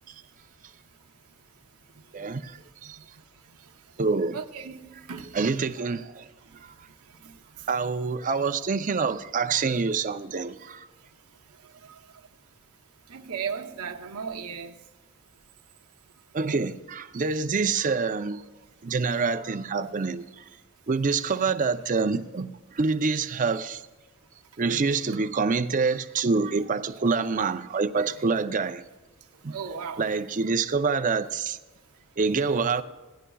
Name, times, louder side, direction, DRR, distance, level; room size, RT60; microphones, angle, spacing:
voice 1, 2.1-3.0 4.0-4.4 5.3-6.3 6.6-6.7 7.7-10.9 16.3-18.4 18.8-20.4 20.9-23.8 24.6-28.8 29.4-29.5 30.0-31.6 32.2-32.8, right 4 dB, 35° right, 0.5 m, -26 dB
voice 2, 4.3-5.3 7.2-7.3 11.8-11.9 13.1-14.7 29.5-30.1, right 6 dB, 85° right, 0.8 m, -35 dB
17.5 x 11.0 x 2.3 m
head